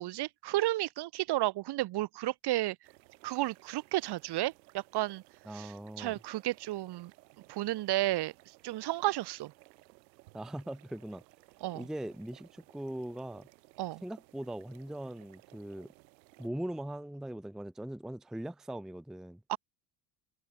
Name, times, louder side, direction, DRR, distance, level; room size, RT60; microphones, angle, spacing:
voice 1, 0.0-2.8 3.2-5.2 5.5-7.1 7.5-8.3 8.6-9.5 11.6-11.9 13.8-14.0 19.5-19.6, right 16 dB, 55° right, 1.3 m, -32 dB
sound 1, 2.8-16.5, right 21 dB, 90° right, 4.7 m, -60 dB
voice 2, 5.5-6.2 10.3-11.2 11.7-13.5 14.0-15.9 16.4-19.4, right 1 dB, ahead, 0.6 m, -40 dB
supercardioid pair, 95°, 49 cm